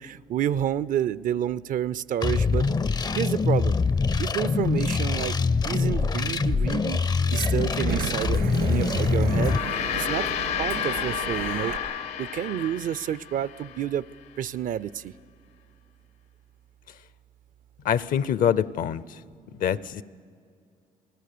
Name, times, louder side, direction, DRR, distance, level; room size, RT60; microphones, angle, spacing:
voice 1, 0.0-2.7 3.1-3.8 4.2-5.4 5.6-7.0 7.3-9.6 9.9-10.3 10.6-11.7 12.2-14.0 14.4-15.1, right 10 dB, 60° right, 0.5 m, -29 dB
sound 1, 2.2-9.6, left 4 dB, 25° left, 0.5 m, -24 dB
Sliding door, 2.4-11.8, right 7 dB, 85° right, 2.8 m, -36 dB
Gong, 9.2-13.8, left 9 dB, 85° left, 1.3 m, -31 dB
voice 2, 17.8-19.0 19.6-20.0, left 9 dB, 65° left, 0.7 m, -24 dB
28.5 x 19.0 x 6.8 m
supercardioid pair, 75°, 15 cm